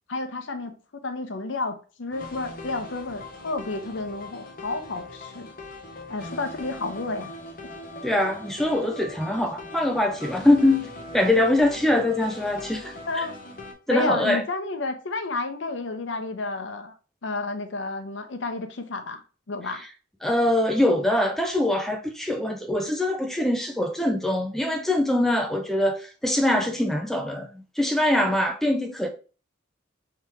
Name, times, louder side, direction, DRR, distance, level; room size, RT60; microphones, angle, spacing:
voice 1, 0.1-5.5 6.1-7.3 13.1-13.4 13.9-16.9 17.2-19.2 19.5-19.8, left 3 dB, 70° left, 0.7 m, -31 dB
sound 1, 2.1-13.7, left 2 dB, 45° left, 0.8 m, -40 dB
voice 2, 8.0-13.2 13.9-14.4 19.7-19.9 20.2-27.5 27.8-29.1, left 1 dB, ahead, 0.4 m, -23 dB
3.6 x 2.9 x 4.4 m
head